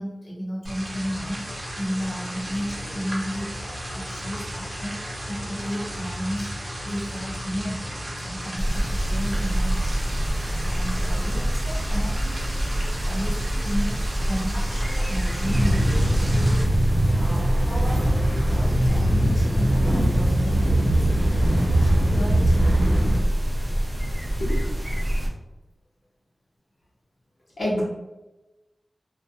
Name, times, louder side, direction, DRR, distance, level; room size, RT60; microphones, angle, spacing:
voice 1, 0.0-3.7 3.9-12.7 13.0-18.1 18.5-23.0, equal, 50° left, -6 dB, 0.8 m, -34 dB
sound 1, 0.6-16.6, equal, 45° right, 0.7 m, -34 dB
sound 2, 8.6-25.3, equal, 5° right, 0.5 m, -26 dB
sound 3, 15.4-23.2, right 1 dB, 90° right, 0.8 m, -21 dB
voice 2, 18.3-18.4 22.8-22.9 24.4-24.6 27.6-27.8, left 1 dB, 90° left, -7 dB, 0.9 m, -27 dB
2.3 x 2.1 x 2.8 m, 1.0 s
wide cardioid pair, 95°, 0 cm